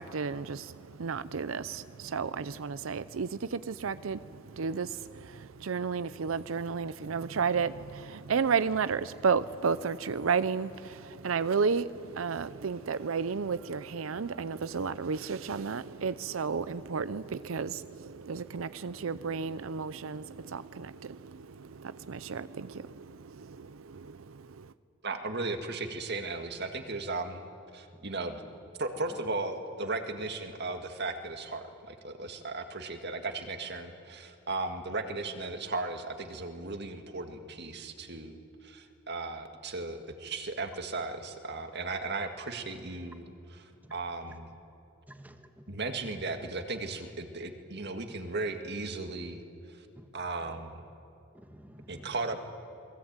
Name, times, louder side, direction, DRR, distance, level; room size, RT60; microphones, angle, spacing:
voice 1, 0.0-24.7, right 5 dB, 90° right, 15 dB, 0.6 m, -32 dB
voice 2, 25.0-27.4 27.7-28.4 28.8-43.3 43.5-44.5 45.7-49.4 49.7-49.9 50.1-50.8 51.9-52.4, right 3 dB, 55° right, 6 dB, 2.0 m, -36 dB
voice 3, 45.1-46.1 48.1-48.2 49.9-50.1 50.4-50.6 51.3-52.3, equal, 10° right, 6 dB, 1.6 m, -52 dB
28.5 x 21.0 x 8.9 m, 2.7 s
head